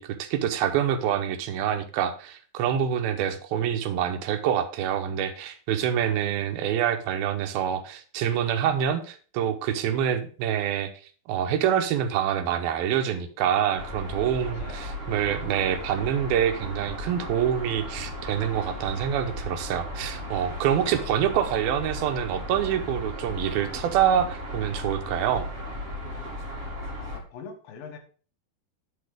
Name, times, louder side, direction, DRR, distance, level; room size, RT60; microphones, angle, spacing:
voice 1, 0.0-10.9 11.3-25.5, right 9 dB, 90° right, 7 dB, 2.8 m, -26 dB
sound 1, 13.8-27.2, equal, 40° right, 0.9 m, -36 dB
voice 2, 14.4-15.0 20.8-21.2 26.9-28.0, left 5 dB, 75° left, 5 dB, 2.9 m, -44 dB
10.0 x 4.4 x 5.0 m, 0.41 s
omnidirectional pair, 4.2 m